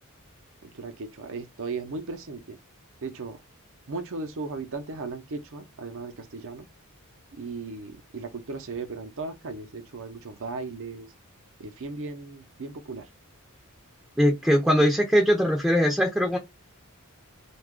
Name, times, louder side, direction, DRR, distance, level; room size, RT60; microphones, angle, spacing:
voice 1, 0.6-2.6 3.0-3.4 3.9-6.7 7.3-11.1 11.6-13.0, right 3 dB, 60° right, 0.6 m, -36 dB
voice 2, 14.2-16.4, equal, 5° right, 0.5 m, -21 dB
2.8 x 2.3 x 3.6 m
head